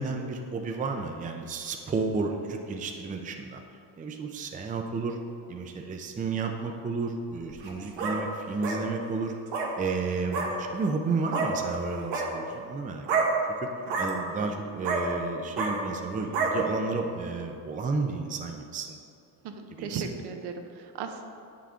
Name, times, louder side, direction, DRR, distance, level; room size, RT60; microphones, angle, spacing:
voice 1, 0.0-3.6 4.0-5.2 5.5-9.3 9.8-13.1 13.6-13.7 14.0-19.0 19.7-20.0, right 4 dB, 20° right, 3 dB, 0.5 m, -32 dB
sound 1, 7.5-8.2 8.6-8.8 9.5-9.7 10.3-10.5 11.3-11.5 12.0-12.3 13.0-13.3 13.8-14.1 14.8-15.0 15.5-15.7 16.3-16.5, right 5 dB, 80° right, 1.4 m, -28 dB
voice 2, 19.4-21.2, right 5 dB, 65° right, 5 dB, 0.8 m, -36 dB
8.4 x 5.8 x 3.6 m, 2.5 s
cardioid pair, 110°, 44 cm